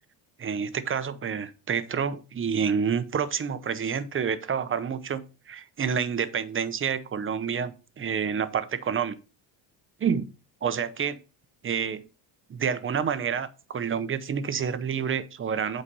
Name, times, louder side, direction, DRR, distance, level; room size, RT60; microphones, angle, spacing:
voice 1, 0.4-9.1 10.0-10.3 10.6-11.2 11.6-12.0 12.5-15.8, right 7 dB, 30° right, 13 dB, 0.8 m, -28 dB
8.5 x 4.1 x 5.4 m, 0.32 s
cardioid pair, 115°, 44 cm